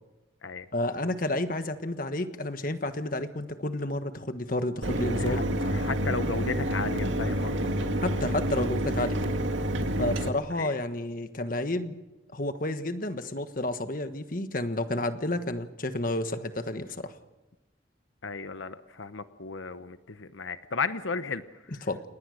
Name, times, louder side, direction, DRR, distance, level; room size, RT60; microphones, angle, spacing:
voice 1, 0.7-5.4 8.0-9.2 10.0-12.0 12.3-17.1 21.8-22.0, left 1 dB, 45° left, 9 dB, 1.4 m, -30 dB
Mechanisms, 4.8-10.3, right 1 dB, 80° right, 1.9 m, -28 dB
voice 2, 5.2-8.0 10.6-10.7 18.2-21.4, left 4 dB, 85° left, 11 dB, 1.0 m, -34 dB
29.0 x 20.0 x 6.5 m, 1.0 s
head